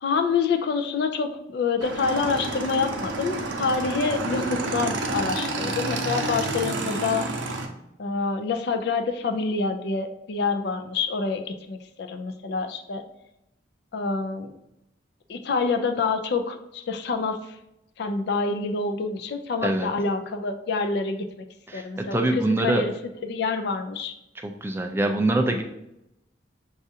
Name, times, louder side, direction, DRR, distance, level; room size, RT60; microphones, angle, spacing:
voice 1, 0.0-7.3 8.0-13.0 13.9-14.5 15.3-17.6 18.0-21.3 21.7-22.9 23.2-24.2, left 4 dB, 60° left, 6 dB, 0.4 m, -27 dB
Motorcycle / Engine, 1.8-7.7, right 2 dB, 85° right, 0.6 m, -29 dB
voice 2, 21.7-22.8 24.4-25.6, right 2 dB, 15° right, 4 dB, 0.3 m, -24 dB
6.1 x 2.4 x 2.7 m, 0.85 s
head